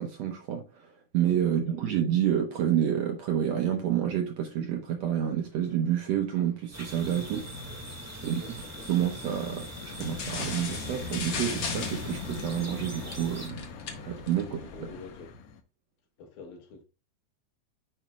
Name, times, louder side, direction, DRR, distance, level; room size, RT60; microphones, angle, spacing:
voice 1, 0.0-7.5 8.2-8.4 8.9-13.7 14.1-14.9, right 10 dB, 65° right, 1.8 m, -29 dB
voice 2, 1.5-1.8 8.2-8.9 14.0-14.3 14.7-15.3 16.2-16.8, left 4 dB, 85° left, 3.8 m, -47 dB
sound 1, 2.5-3.1 3.4-4.1 4.5-15.6, left 5 dB, 70° left, 1.9 m, -43 dB
sound 2, 6.7-13.5, equal, 15° right, 0.6 m, -42 dB
sound 3, 10.0-15.2, left 4 dB, 50° left, 1.5 m, -38 dB
9.1 x 5.7 x 2.3 m
omnidirectional pair, 4.0 m